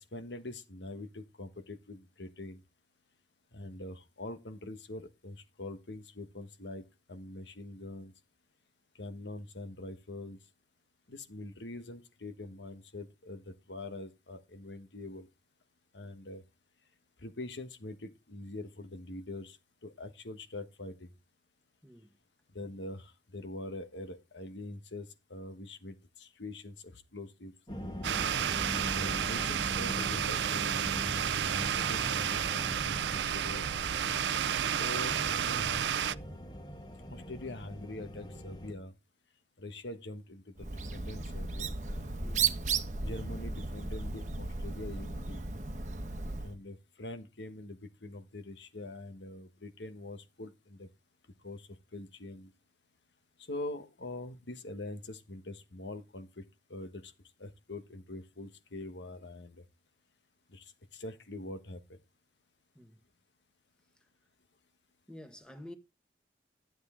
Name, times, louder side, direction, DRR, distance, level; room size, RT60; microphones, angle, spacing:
voice 1, 0.1-2.6 3.5-8.1 9.0-10.4 11.1-15.3 15.9-16.4 17.2-19.6 19.8-21.1 22.5-27.5 28.7-31.0 31.5-33.6 34.8-36.2 37.1-38.9 39.6-42.4 43.0-45.4 46.4-50.9 51.4-52.5 53.5-56.4 56.7-57.1 57.4-59.6 60.5-62.0, left 2 dB, 90° left, 1.4 m, -44 dB
voice 2, 21.8-22.1 42.2-42.5 62.7-63.0 65.1-65.7, left 1 dB, 5° left, 1.4 m, -49 dB
sound 1, 27.7-38.7, equal, 25° left, 1.5 m, -42 dB
sound 2, 28.0-36.1, right 9 dB, 85° right, 0.4 m, -31 dB
Bird, 40.6-46.6, right 5 dB, 45° right, 1.0 m, -35 dB
12.0 x 7.9 x 3.7 m
head